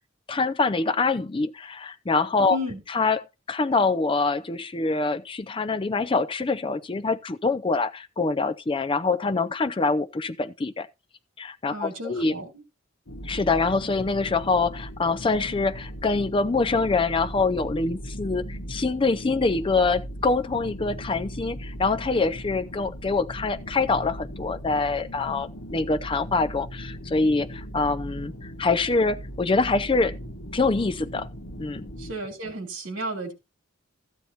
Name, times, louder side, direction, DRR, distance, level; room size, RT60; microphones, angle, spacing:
voice 1, 0.3-2.6 2.9-3.2 3.5-10.9 11.4-12.3 13.2-30.2 30.5-31.3 31.6-31.8, left 3 dB, 25° left, 0.4 m, -25 dB
voice 2, 2.4-2.8 11.7-12.5 32.0-33.3, equal, 70° right, 3.2 m, -33 dB
sound 1, 13.1-32.1, equal, 75° left, 1.3 m, -38 dB
14.5 x 9.2 x 2.8 m
head